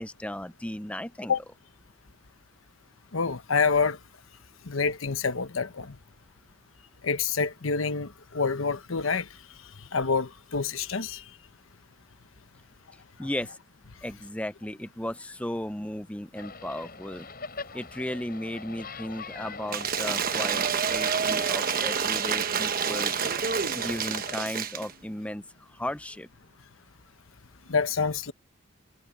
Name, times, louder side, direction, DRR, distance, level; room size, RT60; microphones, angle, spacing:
voice 1, 0.0-1.3 12.9-13.6 14.0-17.3 17.7-23.1 23.7-26.3, left 1 dB, 5° left, 0.7 m, -35 dB
voice 2, 3.1-4.0 4.7-6.0 7.0-9.3 9.9-11.2 27.7-28.3, left 5 dB, 85° left, 1.0 m, -27 dB
sound 1, 16.3-24.4, left 4 dB, 45° left, 7.5 m, -43 dB
Cheering / Applause / Crowd, 19.7-24.9, right 7 dB, 45° right, 1.1 m, -28 dB
head